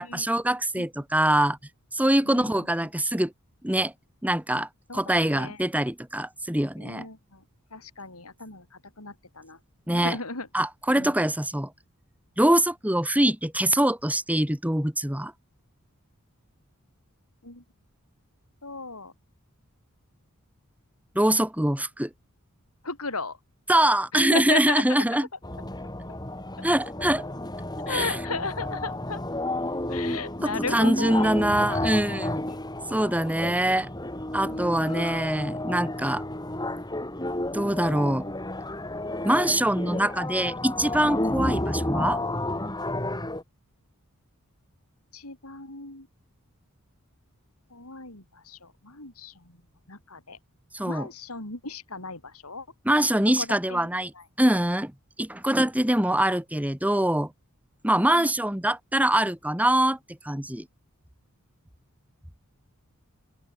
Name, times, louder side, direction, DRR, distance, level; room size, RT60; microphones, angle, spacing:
voice 1, 0.0-1.6 1.9-3.3 3.6-3.9 4.2-7.1 9.9-10.2 10.5-11.7 12.4-15.3 21.2-22.1 23.7-25.3 26.6-27.2 27.9-28.2 30.4-32.5 32.9-33.9 34.3-36.2 37.5-38.3 39.2-42.2 50.7-51.1 52.9-54.1 54.4-54.9 55.2-57.3 57.8-60.0 60.2-60.7, right 1 dB, 5° right, 2.0 m, -24 dB
voice 2, 2.3-2.7 4.9-5.6 6.8-7.4 7.7-8.6 9.0-9.6 9.9-10.5 10.9-11.1 17.4-17.6 18.6-19.1 22.8-23.4 24.1-25.0 27.9-29.2 29.9-31.4 32.1-32.6 32.9-33.5 34.5-35.0 45.1-46.1 47.7-49.3 49.9-50.4 50.9-52.7 53.4-53.9 58.1-58.3, left 4 dB, 80° left, 6.4 m, -36 dB
sound 1, 25.4-43.4, left 1 dB, 20° left, 6.6 m, -31 dB
open air
head